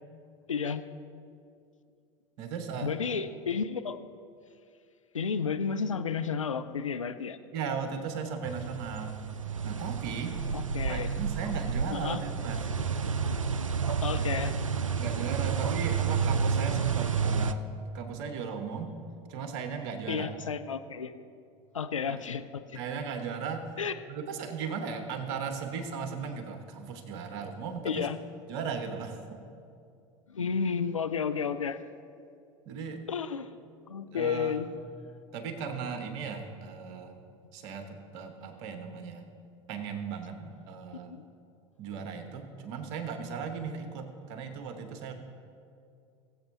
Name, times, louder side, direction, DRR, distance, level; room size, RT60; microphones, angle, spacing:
voice 1, 0.5-0.8 2.8-4.0 5.1-7.4 10.5-11.1 11.9-12.2 14.0-14.6 20.1-21.1 21.7-22.8 23.8-23.9 27.8-28.2 30.3-31.8 33.1-33.5 33.9-34.7 41.1-41.3, left 6 dB, 85° left, 9 dB, 0.4 m, -32 dB
voice 2, 2.4-2.9 7.5-9.2 9.6-10.4 10.9-12.6 14.1-14.3 15.0-17.6 17.9-18.9 19.3-20.3 22.1-22.2 22.7-23.7 24.1-28.1 28.5-29.2 32.7-33.0 34.1-34.6 35.3-37.1 37.5-39.3 39.7-41.1 41.8-45.1, right 6 dB, 55° right, 6 dB, 1.2 m, -37 dB
sound 1, 8.4-17.5, right 6 dB, 90° right, 0.4 m, -30 dB
20.0 x 7.9 x 2.8 m, 2.4 s
figure-of-eight pair, 80°, 16 cm